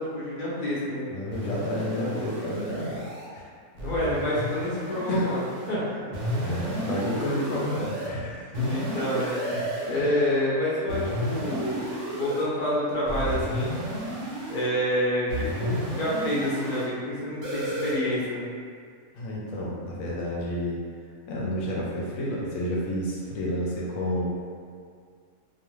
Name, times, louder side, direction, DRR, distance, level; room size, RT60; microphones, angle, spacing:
voice 1, 0.0-1.1 1.7-2.3 3.7-6.1 6.8-6.9 8.5-9.3 9.9-11.9 12.2-13.8 14.5-18.4, left 1 dB, 45° left, -7 dB, 0.5 m, -28 dB
voice 2, 1.1-3.1 3.3-3.5 5.1-5.3 6.4-8.7 9.1-9.8 19.1-20.8 21.3-24.2, equal, 70° left, -5 dB, 0.9 m, -30 dB
sound 1, 1.3-3.3 3.8-5.7 6.1-8.1 8.5-10.1 10.9-12.4 13.1-14.7 15.3-16.9 17.4-17.9, equal, 65° right, 0.9 m, -32 dB
2.4 x 2.4 x 3.0 m, 2.1 s
omnidirectional pair, 1.6 m